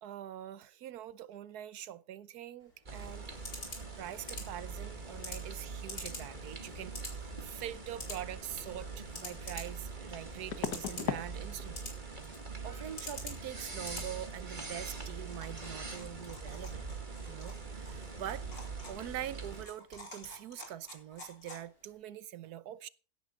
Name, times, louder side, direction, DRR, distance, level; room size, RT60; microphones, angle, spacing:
voice 1, 0.0-3.3 4.0-11.9 12.6-16.8 17.3-18.5 18.9-22.9, right 11 dB, 85° right, 1.3 m, -44 dB
sound 1, 2.6-22.0, left 2 dB, 70° left, 4.8 m, -49 dB
sound 2, 2.9-19.6, right 4 dB, 30° right, 2.1 m, -43 dB
sound 3, 9.0-9.1 10.5-11.3 11.6-12.0 12.2-12.4 15.4-15.5 15.7-16.0 16.2-16.4, left 8 dB, 85° left, 1.7 m, -38 dB
16.5 x 10.5 x 3.9 m
omnidirectional pair, 1.6 m